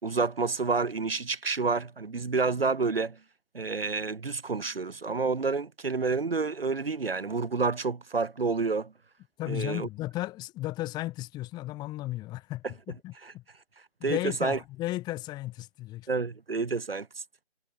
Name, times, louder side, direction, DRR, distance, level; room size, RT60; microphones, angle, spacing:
voice 1, 0.0-3.2 3.5-8.9 9.5-9.9 13.2-13.3 14.0-14.6 16.1-17.1, right 4 dB, 60° right, 4.0 m, -29 dB
voice 2, 9.4-13.4 14.0-16.1, left 17 dB, 15° left, 4.5 m, -35 dB
figure-of-eight pair, 145°, 32 cm